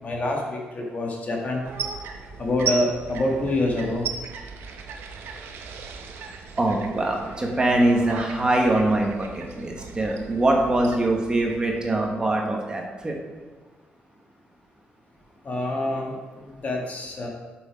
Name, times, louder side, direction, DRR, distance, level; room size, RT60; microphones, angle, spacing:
voice 1, 0.0-1.6 2.4-4.1 15.4-17.3, left 1 dB, 40° left, 0 dB, 1.8 m, -26 dB
sound 1, 1.6-12.5, right 6 dB, 85° right, 0.9 m, -37 dB
voice 2, 6.5-13.2, right 1 dB, 25° right, 0 dB, 1.5 m, -23 dB
7.8 x 6.4 x 4.8 m, 1.4 s
cardioid pair, 100°, 4 cm